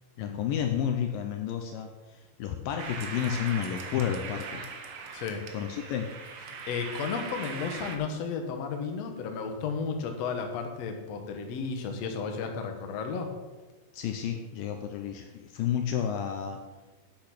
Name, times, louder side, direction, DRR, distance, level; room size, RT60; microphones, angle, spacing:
voice 1, 0.2-4.7 5.5-6.1 13.9-16.6, left 9 dB, 75° left, 4 dB, 2.2 m, -31 dB
sound 1, 2.8-8.0, right 5 dB, 70° right, 1.5 m, -40 dB
voice 2, 5.1-5.4 6.7-13.3, left 5 dB, 60° left, 4 dB, 1.8 m, -33 dB
8.7 x 8.3 x 5.9 m, 1.2 s
omnidirectional pair, 4.4 m